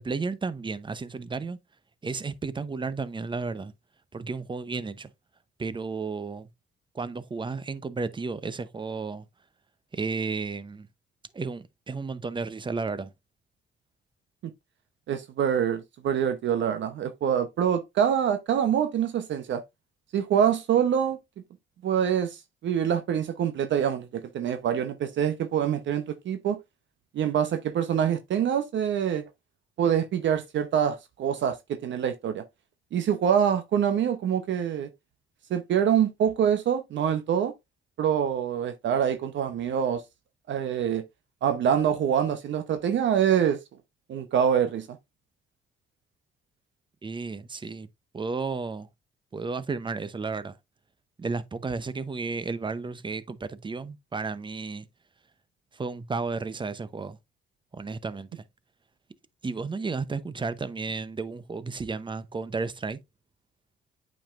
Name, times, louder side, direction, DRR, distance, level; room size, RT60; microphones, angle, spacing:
voice 1, 0.0-1.6 2.0-3.7 4.1-5.1 5.6-6.5 6.9-9.2 9.9-10.9 11.3-13.1 47.0-47.9 48.1-48.9 49.3-50.5 51.2-54.9 55.7-57.2 57.7-58.4 59.4-63.0, right 4 dB, 25° right, 0.8 m, -33 dB
voice 2, 15.1-19.6 20.1-21.2 21.8-26.6 27.1-29.3 29.8-32.4 32.9-34.9 35.5-37.5 38.0-40.0 40.5-41.0 41.4-43.6 44.1-45.0, right 8 dB, 70° right, 0.9 m, -25 dB
8.7 x 5.4 x 2.5 m
cardioid pair, 90°, 20 cm